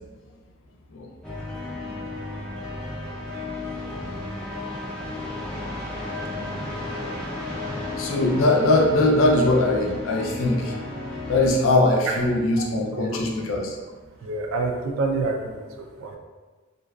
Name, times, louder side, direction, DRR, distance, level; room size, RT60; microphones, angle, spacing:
sound 1, 1.2-11.5, left 2 dB, 5° left, 0.4 m, -33 dB
voice 1, 8.0-10.7 11.3-13.8, left 2 dB, 70° left, 0 dB, 0.4 m, -21 dB
voice 2, 14.2-16.2, right 3 dB, 80° right, 3 dB, 0.4 m, -28 dB
2.5 x 2.2 x 2.3 m, 1.3 s
head